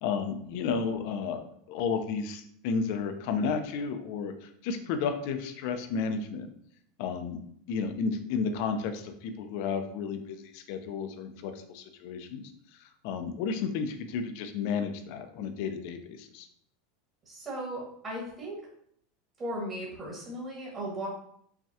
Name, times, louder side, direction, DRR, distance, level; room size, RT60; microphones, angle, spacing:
voice 1, 0.0-1.4 1.7-6.5 7.0-7.4 7.7-12.4 12.8-16.5, left 5 dB, 60° left, 7 dB, 0.5 m, -32 dB
voice 2, 17.2-18.5 19.4-21.1, right 1 dB, 30° right, -5 dB, 1.4 m, -36 dB
5.7 x 2.3 x 2.8 m, 0.67 s
supercardioid pair, 135°, 0 cm